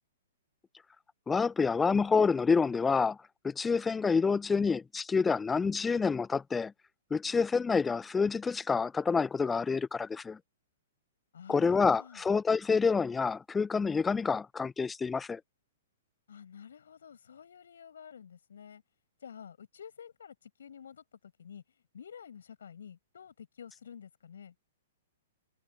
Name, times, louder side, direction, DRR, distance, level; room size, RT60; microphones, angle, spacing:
voice 1, 1.3-3.2 3.4-6.7 7.1-10.4 11.5-15.4, left 5 dB, 10° left, 0.6 m, -28 dB
voice 2, 11.3-12.2 16.3-18.8 19.2-21.6 21.9-24.5, left 7 dB, 65° left, 8.0 m, -50 dB
figure-of-eight pair, 110°, 0 cm